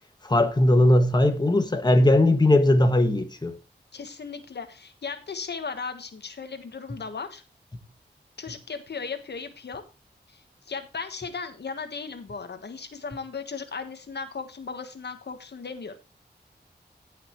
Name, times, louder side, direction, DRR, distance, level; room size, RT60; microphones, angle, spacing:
voice 1, 0.2-3.5 7.7-7.8, left 1 dB, 25° left, 1.4 m, -19 dB
voice 2, 3.9-7.4 8.4-9.8 10.3-10.4 10.7-16.0, left 5 dB, 75° left, 1.3 m, -36 dB
16.5 x 5.8 x 3.1 m
wide cardioid pair, 85°, 18 cm